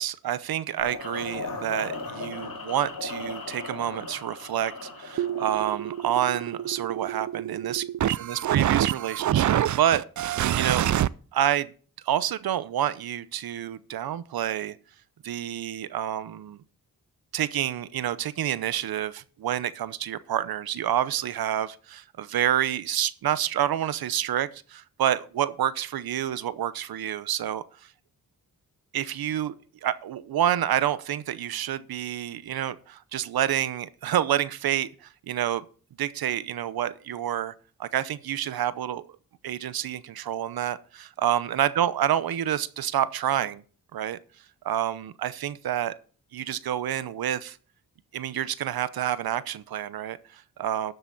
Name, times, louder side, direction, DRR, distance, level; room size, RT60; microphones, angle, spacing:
voice 1, 0.0-7.8 8.2-10.8 11.3-11.7 12.0-14.7 15.2-16.6 17.3-27.6 28.9-29.5 29.8-35.6 36.0-37.5 37.8-39.0 39.4-43.6 43.9-44.2 44.6-45.9 46.3-47.6 48.1-50.9, right 11 dB, 85° right, 0.8 m, -28 dB
sound 1, 0.8-6.7, left 3 dB, 70° left, 3.4 m, -37 dB
marimba trill grunt glitchese, 5.2-11.1, right 11 dB, 55° right, 0.4 m, -26 dB
12.0 x 8.0 x 4.1 m
cardioid pair, 85°, 36 cm